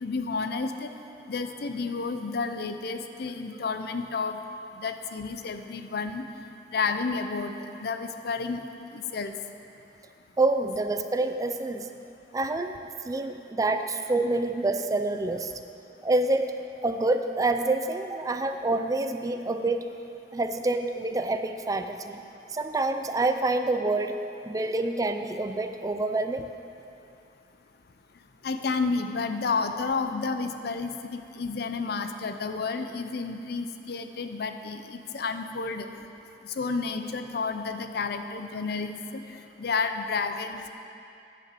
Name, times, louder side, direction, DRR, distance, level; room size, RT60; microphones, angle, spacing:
voice 1, 0.0-0.9 1.3-4.4 4.8-6.2 6.7-7.5 7.8-8.6 8.9-9.3 28.4-35.9 36.6-39.0 39.6-40.7, left 4 dB, 60° left, 8 dB, 0.5 m, -31 dB
voice 2, 10.4-11.9 12.3-12.7 13.1-15.5 16.0-16.5 16.8-19.8 20.3-22.2 22.5-24.2 24.5-26.4, right 2 dB, 20° right, 7 dB, 0.4 m, -27 dB
9.6 x 5.9 x 7.5 m, 2.7 s
head